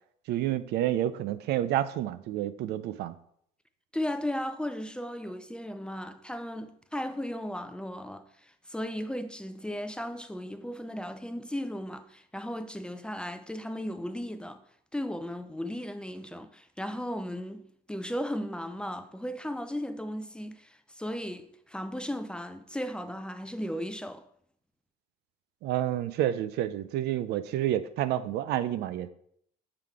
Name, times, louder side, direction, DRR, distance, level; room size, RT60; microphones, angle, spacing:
voice 1, 0.3-3.1 25.6-29.1, right 12 dB, 75° right, 0.5 m, -29 dB
voice 2, 3.9-14.6 14.9-24.2, equal, 5° left, 0.4 m, -36 dB
6.8 x 3.7 x 4.7 m
cardioid pair, 110°, 17 cm